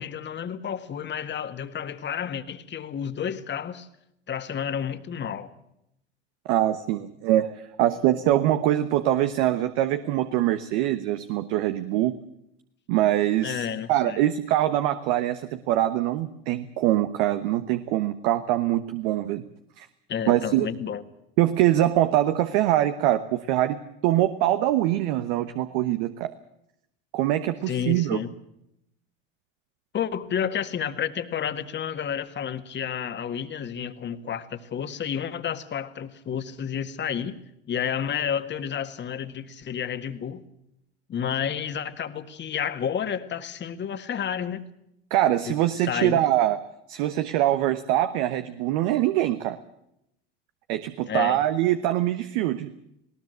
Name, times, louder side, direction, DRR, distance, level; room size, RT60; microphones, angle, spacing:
voice 1, 0.0-3.9 4.3-5.5 13.4-14.2 20.1-21.0 27.7-28.3 29.9-37.4 37.7-40.4 41.1-44.7 45.5-45.6 45.8-46.2 51.1-51.4, left 8 dB, 35° left, 10 dB, 1.8 m, -30 dB
voice 2, 6.5-12.1 12.9-19.4 19.8-19.9 20.3-20.7 21.4-26.3 27.1-28.2 45.1-46.6 46.9-49.6 50.7-52.7, right 13 dB, 70° right, 10 dB, 1.2 m, -23 dB
20.0 x 18.0 x 7.9 m, 0.79 s
hypercardioid pair, 90°, 31 cm